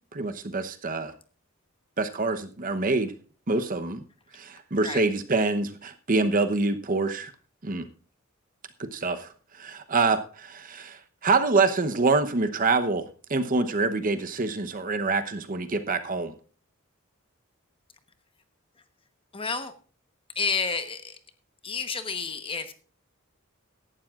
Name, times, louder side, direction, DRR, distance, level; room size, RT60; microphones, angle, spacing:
voice 1, 0.1-1.1 2.0-3.1 3.5-4.0 4.3-7.3 7.6-7.9 8.8-9.3 9.6-16.3, right 3 dB, 40° right, 9 dB, 0.9 m, -26 dB
voice 2, 19.3-19.7 20.3-21.2 21.6-22.7, left 5 dB, 25° left, 9 dB, 1.0 m, -30 dB
16.5 x 12.0 x 2.4 m, 0.38 s
head